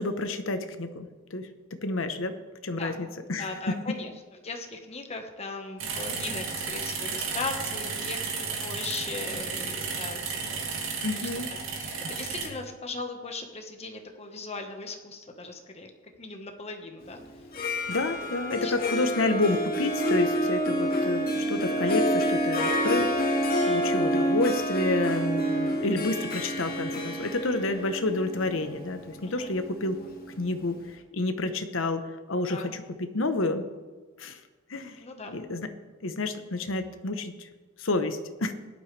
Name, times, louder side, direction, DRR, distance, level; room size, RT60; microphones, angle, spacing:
voice 1, 0.0-1.5 1.8-2.4 2.6-3.5 11.0-11.5 17.9-30.0 30.3-30.8 31.1-33.6 34.2-34.4 34.7-35.0 35.3-35.7 36.0-37.5 37.8-38.5, left 2 dB, 70° left, 8 dB, 1.0 m, -29 dB
voice 2, 3.4-4.1 4.4-10.7 11.1-15.9 16.2-17.2 18.6-18.7 29.2-29.5 32.5-32.8 35.0-35.3, left 3 dB, 30° left, 4 dB, 1.4 m, -38 dB
sound 1, 5.8-12.5, right 5 dB, 75° right, 2.5 m, -33 dB
Harp, 17.4-30.3, equal, 50° left, 1.7 m, -28 dB
17.0 x 11.5 x 3.4 m, 1.4 s
head